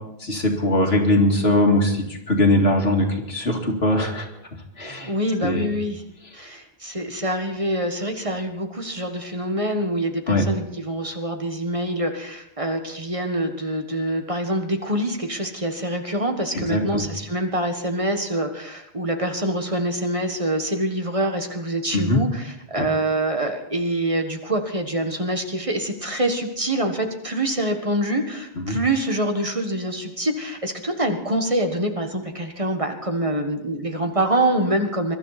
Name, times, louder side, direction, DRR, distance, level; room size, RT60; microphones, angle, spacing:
voice 1, 0.2-4.3 4.8-5.1 5.4-5.7 10.3-10.4 16.5-17.1 21.9-22.2 22.8-22.9 28.7-28.8, left 1 dB, 80° left, 1 dB, 2.7 m, -21 dB
voice 2, 5.1-6.0 6.3-35.1, right 1 dB, 35° right, 4 dB, 1.5 m, -25 dB
22.5 x 12.5 x 4.2 m, 0.80 s
omnidirectional pair, 1.0 m